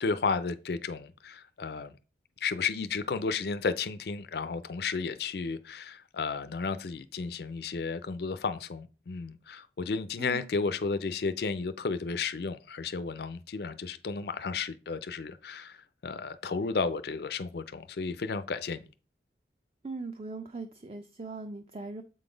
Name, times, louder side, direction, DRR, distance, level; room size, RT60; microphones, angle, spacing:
voice 1, 0.0-1.9 2.4-15.8 16.0-18.8, left 4 dB, 55° left, 0.4 m, -33 dB
voice 2, 10.2-10.5 19.8-22.0, right 3 dB, 30° right, 0.5 m, -40 dB
7.5 x 3.9 x 5.0 m
head